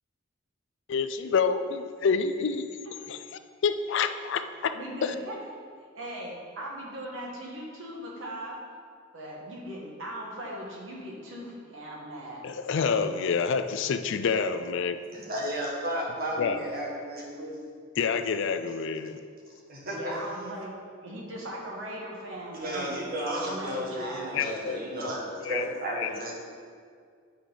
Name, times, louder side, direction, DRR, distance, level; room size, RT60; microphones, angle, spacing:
voice 1, 0.9-2.7 3.1-3.2 3.6-4.7 5.0-5.1 12.4-15.0 16.4-16.6 18.0-19.2 24.3-25.7 26.0-26.2, left 5 dB, 65° left, 10 dB, 0.4 m, -28 dB
voice 2, 4.7-5.4 5.9-8.6 9.1-12.4 19.8-20.7 21.0-22.9 23.3-24.2, right 1 dB, 65° right, -3 dB, 1.6 m, -39 dB
voice 3, 15.1-17.5 19.7-20.3 22.5-26.3, right 1 dB, 50° right, -3 dB, 1.4 m, -33 dB
8.5 x 4.8 x 3.9 m, 2.1 s
head